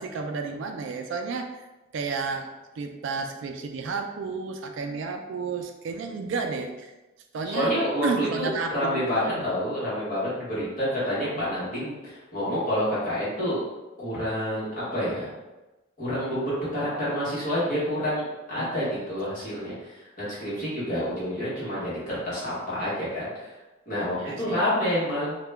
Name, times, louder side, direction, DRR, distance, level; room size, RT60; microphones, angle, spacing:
voice 1, 0.0-1.7 1.9-6.9 7.3-7.7 8.0-9.5 11.4-11.5 18.6-18.9 24.1-24.7, right 4 dB, 65° right, 5 dB, 0.3 m, -32 dB
voice 2, 7.5-13.6 14.0-15.3 16.0-23.5 23.9-25.4, equal, 40° left, -10 dB, 1.2 m, -28 dB
2.8 x 2.2 x 3.3 m, 1.1 s
head